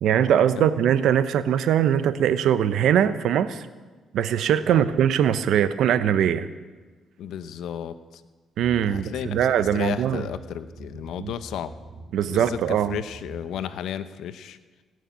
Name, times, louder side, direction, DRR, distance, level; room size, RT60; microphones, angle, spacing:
voice 1, 0.0-3.7 4.1-6.5 8.6-10.2 11.2-11.3 12.1-13.0, right 9 dB, 75° right, 13 dB, 0.7 m, -21 dB
voice 2, 7.2-8.2 8.9-9.4 9.7-11.7 12.2-14.6, left 9 dB, 80° left, 12 dB, 0.8 m, -33 dB
sound 1, 8.6-13.6, right 2 dB, 50° right, 2.1 m, -44 dB
18.5 x 6.6 x 9.4 m, 1.3 s
cardioid pair, 90°, 0 cm